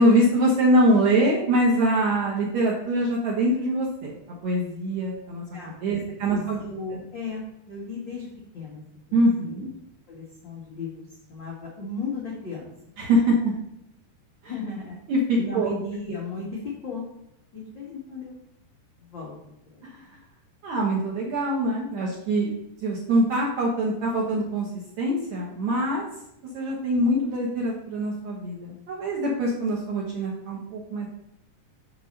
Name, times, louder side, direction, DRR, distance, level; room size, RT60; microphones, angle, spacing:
voice 1, 0.0-4.1 4.4-5.4 5.8-6.6 9.1-9.7 13.0-13.5 15.1-15.7 19.8-20.0 20.6-22.5 22.8-24.7 25.0-26.1 26.5-31.1, right 1 dB, 65° right, -4 dB, 1.9 m, -23 dB
voice 2, 5.5-6.0 6.2-8.3 8.5-8.8 9.1-9.5 10.1-12.7 14.5-15.0 15.4-17.0 17.5-18.4 19.0-19.3 19.7-19.9, left 3 dB, 85° left, -5 dB, 1.0 m, -35 dB
6.7 x 4.2 x 6.5 m, 0.81 s
omnidirectional pair, 4.8 m